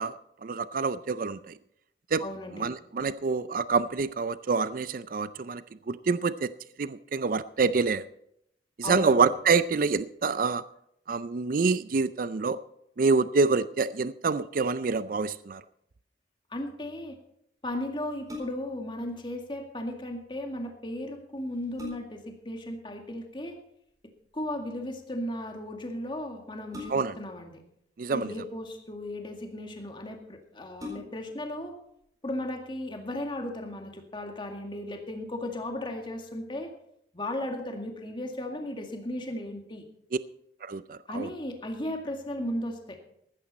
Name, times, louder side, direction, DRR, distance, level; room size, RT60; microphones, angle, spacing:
voice 1, 0.0-1.6 2.1-2.2 2.5-6.5 6.8-8.0 8.8-10.6 11.1-12.6 13.0-15.6 26.9-27.2 28.0-28.3 40.1-40.2 40.6-41.3, right 4 dB, 50° right, 0.4 m, -27 dB
voice 2, 2.2-2.7 8.8-9.2 16.5-17.2 17.6-23.6 24.3-27.6 28.1-31.7 32.2-36.7 37.1-39.8 41.1-43.0, left 1 dB, 30° left, 2.0 m, -36 dB
sound 1, 18.3-18.8 20.8-20.9 21.4-22.3 23.9-24.3 26.7-27.3 28.3-29.0 29.7-29.8 30.1-30.2 30.7-31.4 31.9-32.0, left 3 dB, 20° right, 4.3 m, -43 dB
15.0 x 12.5 x 4.2 m
head